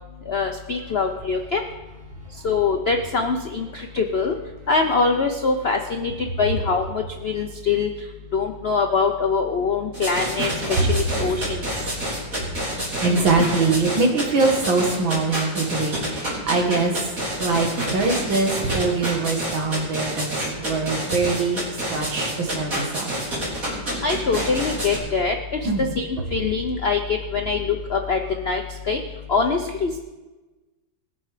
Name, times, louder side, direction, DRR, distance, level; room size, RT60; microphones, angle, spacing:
voice 1, 0.3-1.6 2.4-4.4 4.7-7.9 8.3-11.7 24.0-29.0 29.3-30.0, left 4 dB, 65° left, 4 dB, 0.6 m, -23 dB
sound 1, 9.9-25.0, right 1 dB, 45° right, 4.0 m, -28 dB
voice 2, 13.0-16.9 17.4-20.3 20.6-21.6 21.9-23.1 25.6-25.9, right 3 dB, 80° right, 2 dB, 2.5 m, -23 dB
20.0 x 6.8 x 5.0 m, 1.2 s
omnidirectional pair, 2.1 m